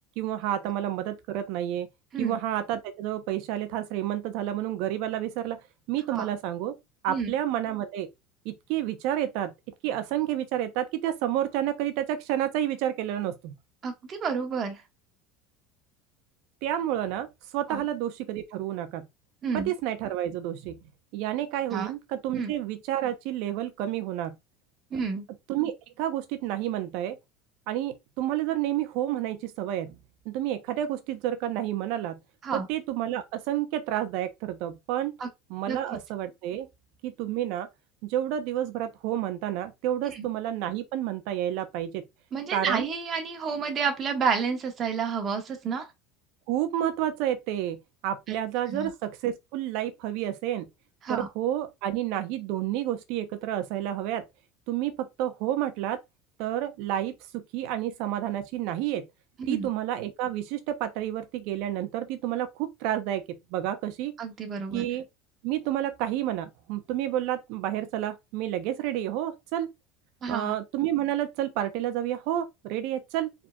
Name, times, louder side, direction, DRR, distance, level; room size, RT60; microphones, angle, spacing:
voice 1, 0.2-1.9 2.2-5.6 5.9-6.8 7.0-8.1 8.4-9.5 9.8-13.5 16.6-19.1 19.5-20.8 21.1-24.4 25.5-27.2 27.7-30.0 30.2-32.2 32.5-35.1 35.5-36.7 37.0-37.7 38.0-42.0 42.5-42.8 46.5-50.7 51.1-54.2 54.7-56.0 56.4-59.1 59.5-64.1 64.7-65.0 65.4-69.7 70.3-73.3, right 12 dB, 70° right, 0.9 m, -30 dB
voice 2, 13.8-14.8 17.7-17.8 19.4-19.7 21.7-21.9 22.3-22.5 24.9-25.3 32.4-32.7 35.2-35.3 35.7-35.8 40.0-40.3 42.3-45.9 48.3-48.4 48.7-48.9 51.0-51.3 59.4-59.7 64.2-64.8 70.2-70.5, right 5 dB, 40° right, 1.5 m, -30 dB
4.6 x 3.9 x 2.3 m
supercardioid pair, 100°, 0 cm